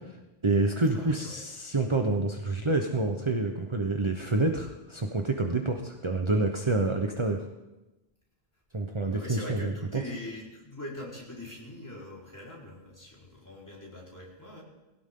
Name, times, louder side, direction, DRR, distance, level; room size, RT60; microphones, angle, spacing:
voice 1, 0.4-7.5 8.7-10.0, right 2 dB, 30° right, 3 dB, 1.0 m, -28 dB
voice 2, 0.9-1.4 9.1-14.6, left 1 dB, 15° left, -5 dB, 4.5 m, -42 dB
20.5 x 17.0 x 3.8 m, 1.1 s
omnidirectional pair, 1.1 m